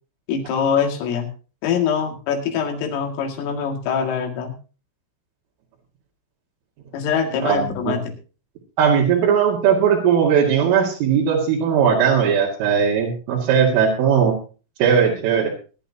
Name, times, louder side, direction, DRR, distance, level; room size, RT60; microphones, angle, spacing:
voice 1, 0.3-1.3 1.6-4.5 6.9-8.0, left 7 dB, 85° left, 2 dB, 4.7 m, -23 dB
voice 2, 7.4-8.0 8.8-14.3 14.8-15.5, right 7 dB, 80° right, -4 dB, 4.4 m, -18 dB
20.5 x 11.5 x 2.8 m, 0.35 s
omnidirectional pair, 5.7 m